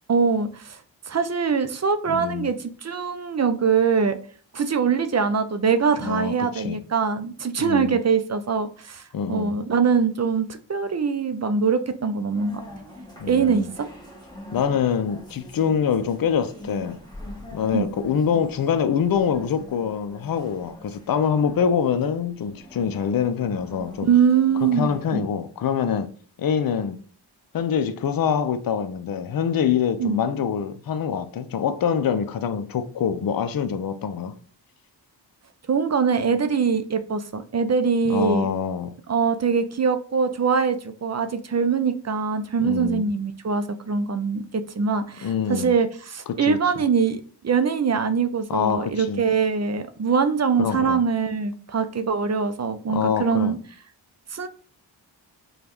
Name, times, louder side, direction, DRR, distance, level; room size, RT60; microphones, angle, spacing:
voice 1, 0.1-0.8 1.1-4.2 4.5-12.6 13.3-13.9 17.7-17.9 24.1-25.2 30.0-30.2 35.7-38.5 39.1-53.6 54.3-54.5, right 5 dB, 40° right, 0.5 m, -23 dB
voice 2, 2.1-2.5 6.0-6.8 7.6-8.0 9.1-9.5 13.2-13.7 14.5-17.0 17.5-24.1 24.6-26.1 26.4-27.0 27.5-34.4 38.1-39.0 42.6-43.1 45.2-45.7 46.3-46.6 48.5-49.2 50.6-51.0 52.9-53.6, left 7 dB, 50° left, 0.5 m, -25 dB
sound 1, 12.3-25.1, left 1 dB, 10° left, 1.2 m, -43 dB
5.0 x 2.3 x 3.0 m
cardioid pair, 45°, 44 cm